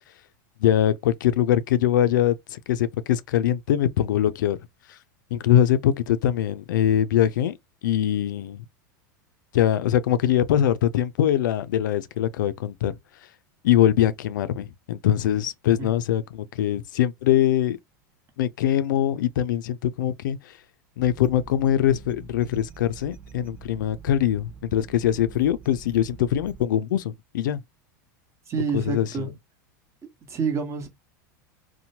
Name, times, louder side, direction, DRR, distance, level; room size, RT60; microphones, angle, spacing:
voice 1, 0.6-4.6 4.9-5.0 5.3-7.6 7.8-8.6 9.5-12.9 13.6-17.8 18.4-20.5 21.0-27.6 28.7-29.3, left 11 dB, 80° left, 0.4 m, -22 dB
sound 1, 21.0-26.7, right 6 dB, 15° right, 0.4 m, -45 dB
voice 2, 28.5-29.3 30.3-30.9, right 5 dB, 30° right, 1.1 m, -28 dB
2.8 x 2.1 x 2.7 m
hypercardioid pair, 115°, 10 cm